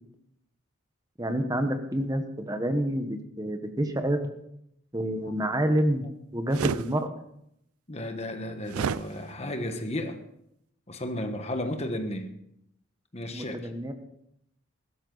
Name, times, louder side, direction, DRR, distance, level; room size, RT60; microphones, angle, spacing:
voice 1, 1.2-4.3 4.9-6.1 6.3-7.1 13.3-13.9, right 1 dB, 15° right, 1.1 m, -28 dB
sound 1, 6.5-6.9 8.7-9.0, right 7 dB, 90° right, 0.4 m, -29 dB
voice 2, 7.9-10.2 10.9-12.3 13.1-13.6, left 1 dB, 30° left, 1.3 m, -33 dB
15.5 x 13.0 x 4.0 m
head